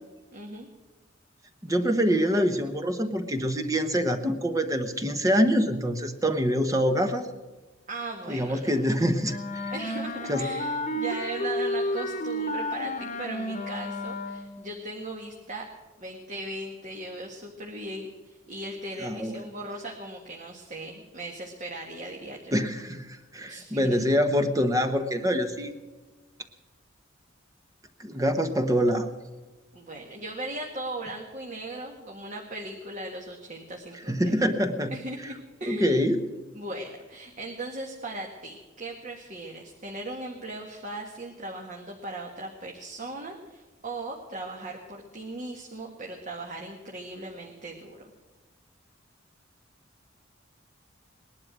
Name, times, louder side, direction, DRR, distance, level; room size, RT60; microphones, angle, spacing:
voice 1, 0.3-0.7 7.9-8.7 9.7-15.7 16.0-22.6 23.5-24.0 29.7-34.3 34.9-36.0 36.5-48.1, right 2 dB, 40° right, 0 dB, 1.8 m, -38 dB
voice 2, 1.6-7.3 8.3-9.7 10.3-10.4 19.0-19.4 22.5-25.7 28.0-29.1 34.1-34.9 35.7-36.2, equal, 15° right, 7 dB, 1.1 m, -25 dB
Wind instrument woodwind instrument, 9.2-14.7, left 1 dB, 40° left, 1.3 m, -31 dB
19.5 x 11.5 x 6.1 m, 1.2 s
head